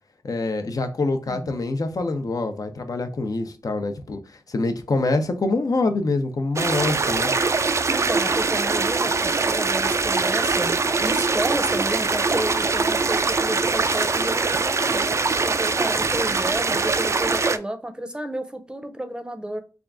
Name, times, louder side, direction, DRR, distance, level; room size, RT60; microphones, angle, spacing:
voice 1, 0.2-4.2 4.5-7.3, left 3 dB, 60° left, 0.7 m, -25 dB
sound 1, 6.6-17.6, right 4 dB, 45° right, 0.3 m, -22 dB
voice 2, 7.9-15.2 15.4-19.6, right 1 dB, 15° right, 0.6 m, -31 dB
3.5 x 2.4 x 3.6 m
wide cardioid pair, 75°, 7 cm